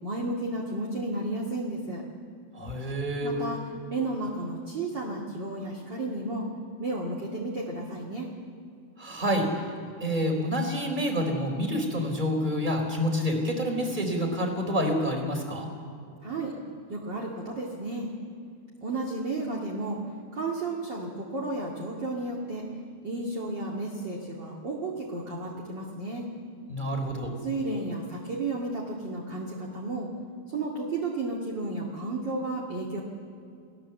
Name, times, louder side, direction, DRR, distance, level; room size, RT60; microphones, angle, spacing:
voice 1, 0.0-2.0 3.2-3.6 3.9-6.5 6.8-8.3 16.2-16.5 16.9-18.1 18.8-20.0 20.3-22.6 23.0-26.3 27.4-30.1 30.5-33.0, right 2 dB, 35° right, -2 dB, 2.0 m, -32 dB
voice 2, 2.5-3.3 9.0-9.5 10.0-15.7 26.7-27.3, equal, 10° right, 3 dB, 3.4 m, -28 dB
29.5 x 18.5 x 7.7 m, 2.4 s
omnidirectional pair, 5.0 m